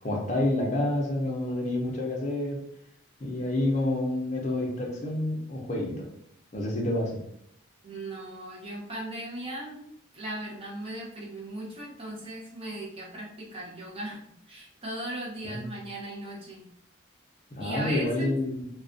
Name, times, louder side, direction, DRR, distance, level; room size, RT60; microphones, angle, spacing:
voice 1, 0.0-2.6 3.2-6.1 6.5-7.2 15.4-15.7 17.5-18.7, left 1 dB, 35° left, -1 dB, 0.5 m, -28 dB
voice 2, 7.8-9.8 10.1-16.7 17.6-18.3, right 1 dB, 25° right, -3 dB, 0.6 m, -38 dB
2.4 x 2.2 x 2.5 m, 0.72 s
head